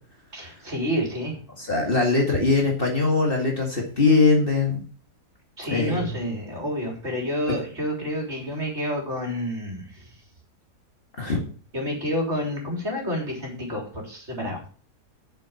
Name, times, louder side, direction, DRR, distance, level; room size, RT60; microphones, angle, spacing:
voice 1, 0.3-1.4 5.6-10.1 11.7-14.6, equal, 40° right, 0 dB, 4.1 m, -29 dB
voice 2, 1.6-4.8 5.7-6.1 11.2-11.4, left 3 dB, 35° left, 0 dB, 2.2 m, -21 dB
7.5 x 7.4 x 7.1 m, 0.42 s
omnidirectional pair, 1.7 m